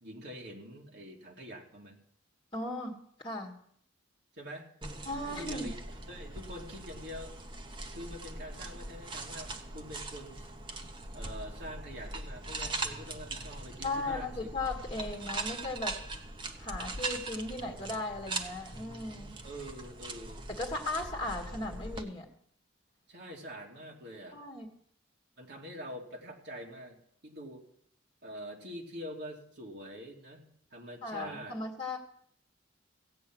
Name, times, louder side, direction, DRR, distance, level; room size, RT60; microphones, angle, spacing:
voice 1, 0.0-2.0 4.3-4.7 5.3-7.4 7.9-10.5 11.1-14.5 19.4-20.4 23.1-24.4 25.4-27.6 28.2-31.6, equal, 55° right, -1 dB, 2.5 m, -45 dB
voice 2, 2.5-3.5 5.0-5.7 13.8-16.0 16.6-19.4 20.5-22.3 24.3-24.7 31.0-32.0, left 2 dB, 25° left, -1 dB, 1.6 m, -37 dB
sound 1, 4.8-22.0, right 2 dB, 25° right, 0.9 m, -41 dB
16.0 x 8.6 x 6.1 m, 0.66 s
head